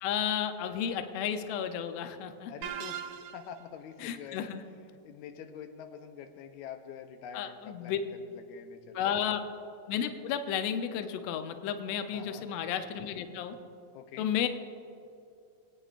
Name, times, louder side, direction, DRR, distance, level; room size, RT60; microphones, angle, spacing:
voice 1, 0.0-2.5 4.0-4.6 7.3-8.0 8.9-9.4 9.9-13.6 14.2-14.5, left 9 dB, 75° left, 8 dB, 1.6 m, -32 dB
voice 2, 2.5-4.5 5.0-9.3 12.1-12.5 13.9-14.3, left 7 dB, 90° left, 7 dB, 2.1 m, -46 dB
sound 1, 2.6-3.7, right 9 dB, 75° right, 1.6 m, -39 dB
27.0 x 9.0 x 2.5 m, 2.6 s
omnidirectional pair, 3.3 m